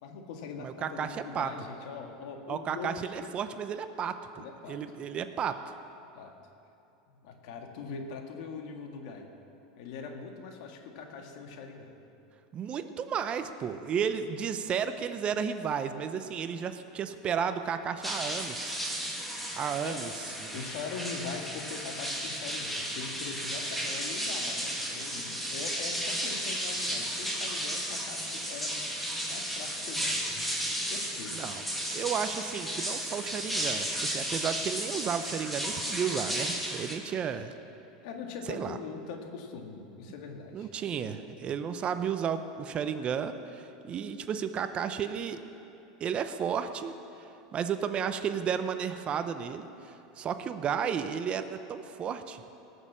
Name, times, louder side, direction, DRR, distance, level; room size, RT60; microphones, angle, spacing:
voice 1, 0.0-3.3 4.4-4.8 6.1-6.3 7.1-9.3 9.8-12.0 19.1-19.3 19.8-20.0 20.5-28.9 29.3-30.2 30.9-31.5 38.0-40.7, left 5 dB, 65° left, 3 dB, 1.8 m, -42 dB
voice 2, 0.6-1.5 2.5-5.7 12.5-18.9 19.6-20.1 20.4-20.6 31.3-31.6 31.9-37.5 38.5-38.8 40.5-45.4 46.0-46.9 47.2-52.4, right 7 dB, 30° right, 10 dB, 0.6 m, -33 dB
sound 1, 18.0-36.9, equal, ahead, 2.1 m, -34 dB
18.5 x 6.5 x 7.4 m, 2.8 s
supercardioid pair, 130°, 4 cm